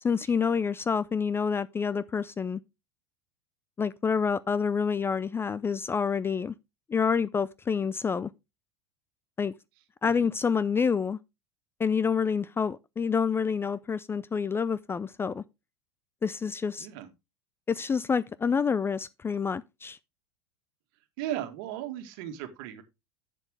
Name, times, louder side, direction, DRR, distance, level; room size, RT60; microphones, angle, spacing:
voice 1, 0.0-2.6 3.8-6.5 6.9-8.3 9.4-9.5 10.0-11.2 11.8-15.4 16.2-16.9 17.7-20.0, left 6 dB, 15° left, 0.4 m, -28 dB
voice 2, 16.8-17.1 21.2-22.8, right 12 dB, 55° right, 1.8 m, -37 dB
10.5 x 7.7 x 3.3 m
figure-of-eight pair, 80°, 14 cm